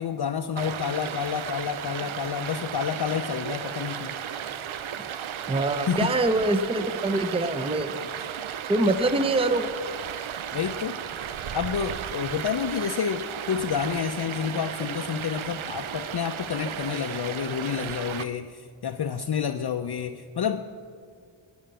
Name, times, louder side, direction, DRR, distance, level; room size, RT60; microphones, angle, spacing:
voice 1, 0.0-4.2 5.9-6.1 10.5-11.0 11.5-20.6, left 7 dB, 55° left, 6 dB, 0.6 m, -29 dB
Stream, 0.6-18.2, right 9 dB, 80° right, 0.6 m, -34 dB
voice 2, 5.5-8.0 8.7-9.7, right 2 dB, 10° right, 9 dB, 0.6 m, -24 dB
13.5 x 8.4 x 7.6 m, 2.2 s
wide cardioid pair, 80°, 47 cm